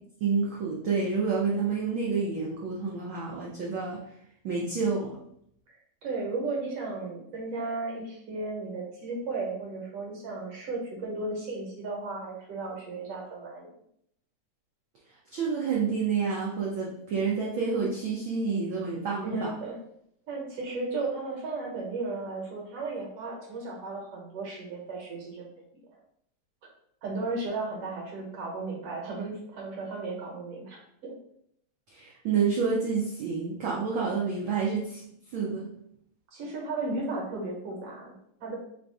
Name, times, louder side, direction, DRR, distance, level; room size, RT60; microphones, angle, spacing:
voice 1, 0.2-4.0 4.4-5.1 15.3-19.5 31.9-35.0 35.3-35.6, right 5 dB, 85° right, -4 dB, 1.1 m, -28 dB
voice 2, 5.7-13.7 19.2-19.8 20.3-25.7 25.9-26.0 27.0-31.1 36.3-38.6, right 3 dB, 65° right, -1 dB, 2.0 m, -35 dB
4.4 x 2.6 x 4.6 m, 0.71 s
omnidirectional pair, 3.3 m